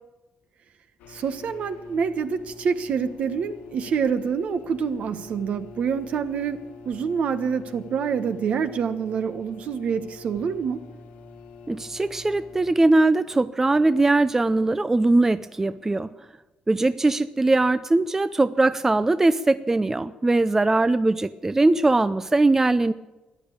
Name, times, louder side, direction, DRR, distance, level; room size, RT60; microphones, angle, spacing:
sound 1, 1.0-12.7, left 5 dB, 85° left, 2.0 m, -45 dB
voice 1, 1.1-6.6 6.8-10.8, right 6 dB, 60° right, 10 dB, 1.3 m, -26 dB
voice 2, 11.7-16.1 16.7-22.9, right 2 dB, 15° right, 13 dB, 0.5 m, -21 dB
14.0 x 11.0 x 8.8 m, 1.1 s
cardioid pair, 95°, 2 cm